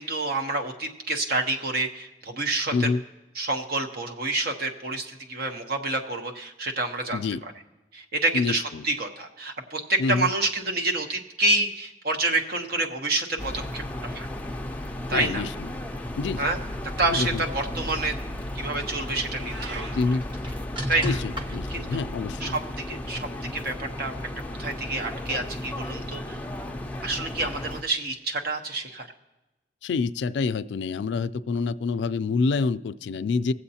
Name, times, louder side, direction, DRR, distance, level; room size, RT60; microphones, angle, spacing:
voice 1, 0.0-2.9 3.4-7.5 7.9-14.3 15.1-15.4 16.4-16.6 17.0-18.1 18.5-20.0 20.9-21.2 21.7-22.0 22.4-22.6 22.9-24.1 24.6-26.4 27.0-29.1, right 2 dB, 60° right, 4 dB, 0.9 m, -28 dB
voice 2, 2.7-3.0 7.1-7.4 8.3-8.9 10.0-10.3 15.1-15.5 16.2-16.5 17.1-17.5 19.9-20.2 21.0-22.6 29.8-33.5, left 4 dB, 90° left, 14 dB, 0.4 m, -27 dB
sound 1, 13.4-27.8, left 1 dB, 10° left, 0.5 m, -34 dB
sound 2, 17.0-22.3, equal, 30° right, 1.0 m, -39 dB
Meow, 19.3-20.0, right 4 dB, 85° right, 0.9 m, -40 dB
21.0 x 7.7 x 2.8 m, 1.0 s
head